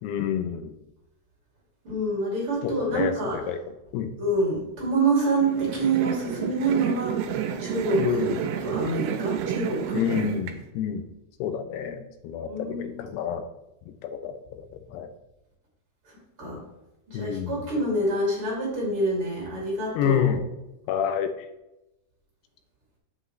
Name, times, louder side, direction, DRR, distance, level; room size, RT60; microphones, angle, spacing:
voice 1, 0.0-0.8 2.6-3.6 3.9-4.1 8.0-8.4 9.9-11.1 11.4-13.4 13.9-15.1 17.1-17.6 20.0-20.5 20.9-21.3, left 8 dB, 85° left, 8 dB, 2.8 m, -28 dB
voice 2, 1.8-3.4 4.2-7.2 7.6-8.0 8.6-10.0 11.8-11.9 12.5-13.0 16.4-16.6 17.1-20.3, right 2 dB, 35° right, -4 dB, 3.0 m, -26 dB
sound 1, 5.4-10.5, right 9 dB, 85° right, 2.6 m, -30 dB
8.1 x 7.8 x 3.2 m, 0.92 s
omnidirectional pair, 4.6 m